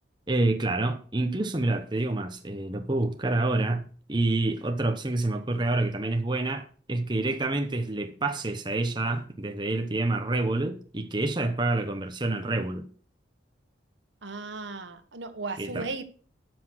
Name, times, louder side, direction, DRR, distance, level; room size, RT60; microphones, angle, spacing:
voice 1, 0.3-12.9 15.6-15.8, right 2 dB, 25° right, 0.9 m, -28 dB
voice 2, 14.2-16.0, right 3 dB, 75° right, 1.4 m, -36 dB
12.5 x 6.1 x 6.2 m
head